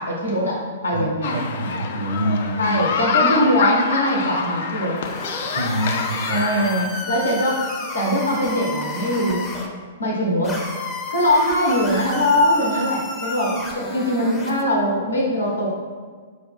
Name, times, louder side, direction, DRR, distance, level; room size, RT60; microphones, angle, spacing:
voice 1, 0.0-1.5 2.6-5.0 6.3-9.5 10.0-10.6 11.1-15.7, equal, 75° left, -2 dB, 0.9 m, -21 dB
voice 2, 0.9-2.8 5.4-6.5, right 1 dB, 60° right, 3 dB, 0.6 m, -26 dB
sound 1, 1.2-6.9, left 6 dB, 55° left, 0.3 m, -26 dB
sound 2, 5.0-9.7 10.4-14.6, left 2 dB, 20° left, 0.6 m, -31 dB
4.7 x 2.2 x 4.2 m, 1.6 s
figure-of-eight pair, 110°, 0 cm